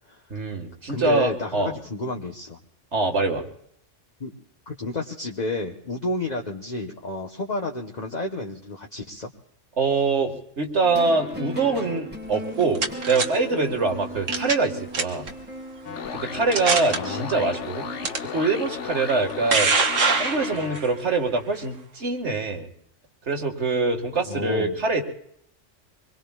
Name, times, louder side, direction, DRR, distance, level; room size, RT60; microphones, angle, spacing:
voice 1, 0.3-1.7 2.9-3.5 9.8-15.3 16.1-17.9 18.3-19.7 20.2-22.7 23.3-25.0, right 3 dB, 65° right, 3 dB, 2.1 m, -24 dB
voice 2, 0.9-2.6 4.2-4.3 4.7-9.3 16.8-17.4 24.3-24.7, left 2 dB, 35° left, 1 dB, 1.2 m, -31 dB
sound 1, 10.8-18.1, equal, 10° right, 1.6 m, -38 dB
sound 2, 12.4-13.3 14.3-14.7 14.9-15.3 15.9-16.0 16.5-17.0 18.0-18.2 19.1-20.9, right 4 dB, 90° right, 1.8 m, -23 dB
sound 3, 15.8-20.8, left 7 dB, 70° left, 1.2 m, -34 dB
26.0 x 22.0 x 2.4 m, 0.72 s
omnidirectional pair, 1.3 m